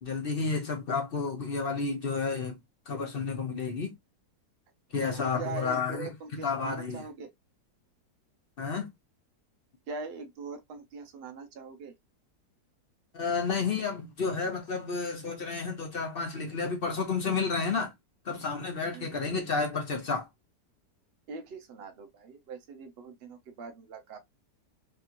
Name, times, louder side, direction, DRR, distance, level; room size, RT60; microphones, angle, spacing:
voice 1, 0.0-2.5 2.9-3.9 4.9-6.1 6.4-7.1 8.6-8.9 13.1-17.9 18.3-20.3, left 4 dB, 50° left, 0.6 m, -31 dB
voice 2, 5.0-7.3 9.9-11.9 18.9-19.1 21.3-24.2, right 4 dB, 85° right, 0.5 m, -42 dB
3.4 x 2.9 x 2.4 m
omnidirectional pair, 1.9 m